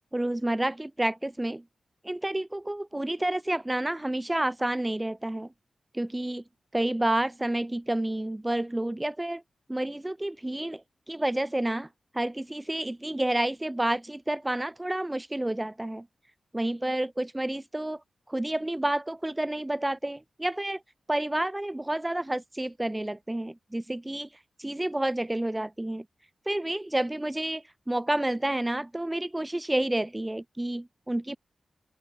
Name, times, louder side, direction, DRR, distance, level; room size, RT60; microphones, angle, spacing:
voice 1, 0.1-1.6 2.0-5.5 5.9-6.4 6.7-9.4 9.7-11.9 12.1-16.0 16.5-18.0 18.3-20.8 21.1-24.3 24.6-26.0 26.4-31.4, right 1 dB, 10° right, 3.5 m, -29 dB
open air
wide cardioid pair, 155°, 0 cm